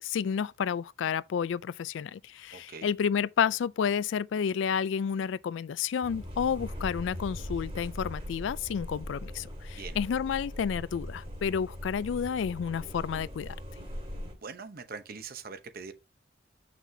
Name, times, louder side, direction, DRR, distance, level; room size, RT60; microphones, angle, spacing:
voice 1, 0.0-13.6, left 7 dB, 75° left, 0.3 m, -30 dB
voice 2, 2.5-2.9 9.8-10.0 14.4-15.9, right 5 dB, 50° right, 0.8 m, -42 dB
sound 1, 6.0-14.3, equal, 30° right, 2.3 m, -40 dB
7.4 x 6.0 x 2.7 m
head